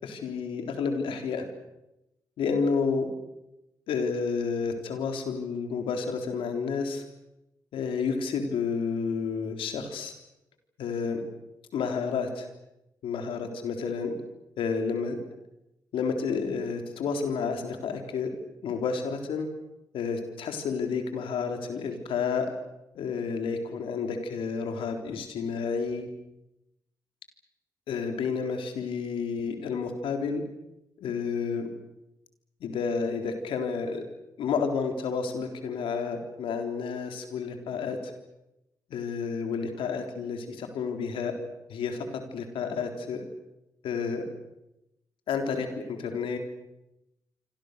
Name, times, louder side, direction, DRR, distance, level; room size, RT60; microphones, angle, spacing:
voice 1, 0.0-1.5 2.4-3.1 3.9-7.0 7.7-10.1 10.8-11.2 11.7-12.5 13.0-14.2 14.6-15.2 15.9-18.3 18.6-19.5 19.9-22.5 22.9-26.1 27.9-30.4 31.0-31.7 32.6-34.0 34.4-38.1 38.9-41.3 41.7-43.2 43.8-44.2 45.3-46.4, left 5 dB, 80° left, 5 dB, 3.8 m, -30 dB
27.0 x 26.0 x 6.8 m, 0.90 s
supercardioid pair, 50°, 9 cm